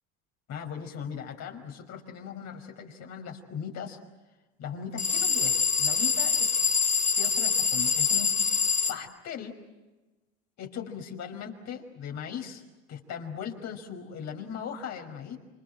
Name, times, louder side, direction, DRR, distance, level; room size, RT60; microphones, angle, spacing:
voice 1, 0.5-4.0 4.6-6.6 7.2-8.3 8.9-9.5 10.6-12.6 12.9-15.4, left 7 dB, 55° left, 3 dB, 5.6 m, -38 dB
sound 1, 5.0-9.0, left 5 dB, 25° left, 2.7 m, -25 dB
29.0 x 26.5 x 7.7 m, 1.1 s
hypercardioid pair, 80°, 32 cm